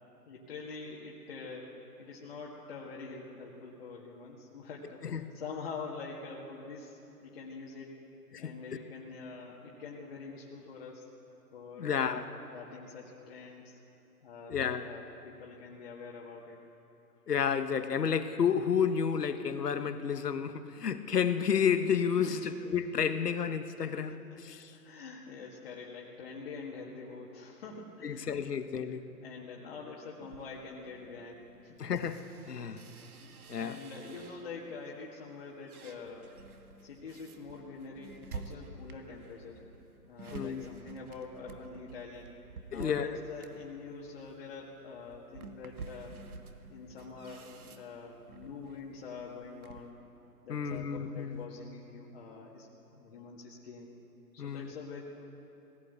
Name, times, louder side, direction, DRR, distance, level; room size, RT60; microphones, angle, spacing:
voice 1, 0.3-1.7 2.0-8.0 8.4-11.1 11.5-12.2 12.5-13.8 14.2-16.6 22.2-22.5 24.7-28.9 29.2-31.8 32.9-33.0 33.5-36.3 36.8-39.6 40.1-42.4 42.7-46.2 46.7-50.0 50.4-53.9 54.3-55.0, left 4 dB, 40° left, -5 dB, 2.0 m, -45 dB
voice 2, 5.0-5.4 8.3-8.5 11.8-12.2 14.5-14.9 17.3-24.7 28.0-29.0 31.8-32.8 33.5-33.8 40.3-40.7 42.7-43.1 50.5-51.4 54.4-54.7, left 7 dB, 70° left, 10 dB, 1.3 m, -31 dB
sound 1, 30.2-34.7 35.2-49.9, right 4 dB, 60° right, 1.8 m, -50 dB
19.0 x 17.0 x 8.2 m, 3.0 s
hypercardioid pair, 160°, 49 cm